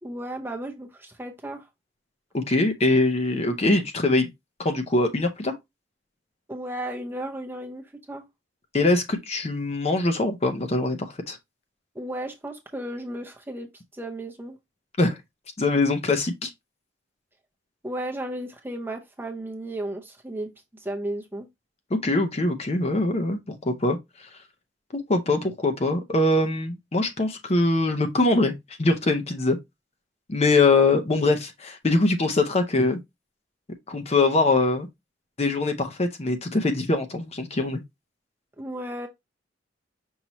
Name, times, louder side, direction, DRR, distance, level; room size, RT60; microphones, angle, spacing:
voice 1, 0.0-1.7 6.5-8.2 11.9-13.7 13.9-14.6 17.8-20.5 20.8-21.5 38.6-39.1, right 1 dB, 10° right, 0.7 m, -34 dB
voice 2, 2.3-4.3 4.6-5.5 8.7-11.4 15.0-15.2 15.6-16.5 22.0-24.0 24.9-28.5 28.8-29.6 30.3-33.0 33.9-34.9 35.4-37.8, left 2 dB, 35° left, 0.7 m, -23 dB
5.5 x 2.8 x 3.0 m
head